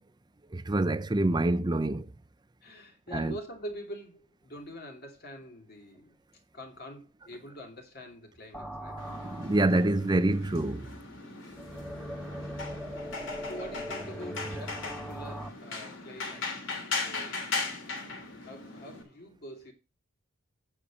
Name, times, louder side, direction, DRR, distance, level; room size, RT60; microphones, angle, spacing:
voice 1, 0.5-2.1 3.1-3.4 9.2-10.9, right 2 dB, 20° right, 0.6 m, -26 dB
voice 2, 2.6-6.2 6.5-9.0 11.2-11.5 13.0-13.1 13.4-16.7 17.0-17.5 17.8-17.9 18.4-19.7, equal, 50° left, 2.8 m, -45 dB
sound 1, 8.5-15.5, equal, 5° left, 1.6 m, -40 dB
sound 2, 9.0-19.0, left 4 dB, 65° left, 2.8 m, -38 dB
8.7 x 5.9 x 6.2 m
head